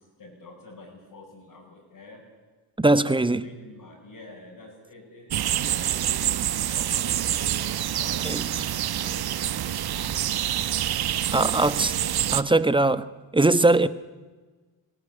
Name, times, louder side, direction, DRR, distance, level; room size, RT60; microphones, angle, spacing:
voice 1, 0.0-2.2 3.0-6.3 6.7-8.3 8.9-10.8 11.3-11.7 12.3-12.7, left 2 dB, 55° left, 7.5 m, -47 dB
voice 2, 2.8-3.4 8.2-8.4 11.3-11.9 12.3-13.0 13.3-13.9, right 2 dB, 10° right, 1.1 m, -20 dB
sound 1, 5.3-12.4, right 11 dB, 60° right, 1.0 m, -26 dB
24.0 x 17.0 x 10.0 m
cardioid pair, 80°, 42 cm